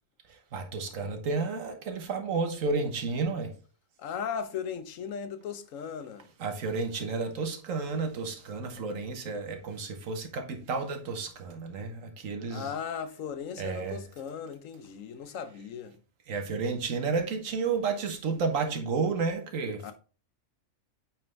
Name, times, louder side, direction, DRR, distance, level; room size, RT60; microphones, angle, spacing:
voice 1, 0.5-3.5 6.4-12.7 13.6-14.0 16.3-19.9, right 4 dB, 80° right, 1.5 m, -31 dB
voice 2, 4.0-6.3 12.5-16.0 19.8-19.9, left 7 dB, 80° left, 1.1 m, -37 dB
9.0 x 4.4 x 3.3 m
omnidirectional pair, 1.4 m